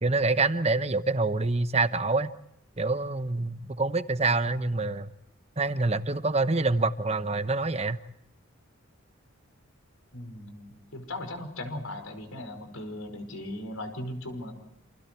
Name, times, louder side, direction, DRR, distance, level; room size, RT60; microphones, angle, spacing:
voice 1, 0.0-2.3 2.8-5.1 5.6-8.0, right 3 dB, 30° right, 11 dB, 1.0 m, -26 dB
voice 2, 10.1-14.5, left 1 dB, 80° left, 7 dB, 5.3 m, -38 dB
28.5 x 28.0 x 4.6 m, 0.80 s
head